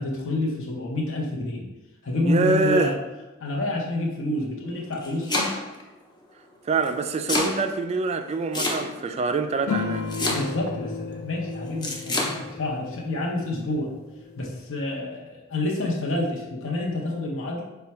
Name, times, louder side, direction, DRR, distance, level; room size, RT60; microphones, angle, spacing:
voice 1, 0.0-1.7 2.0-3.0 3.4-5.7 10.2-13.9 14.4-17.6, left 2 dB, 65° left, -2 dB, 0.8 m, -28 dB
voice 2, 2.3-2.9 6.7-10.0, right 3 dB, 30° right, 7 dB, 0.3 m, -25 dB
Domestic sounds home sounds, 4.8-5.8 6.8-7.6 8.5-9.1 10.1-10.7 11.8-12.3, left 2 dB, 20° left, 0.7 m, -26 dB
sound 1, 9.7-14.6, left 5 dB, 85° left, 0.4 m, -34 dB
5.4 x 2.3 x 4.2 m, 1.1 s
head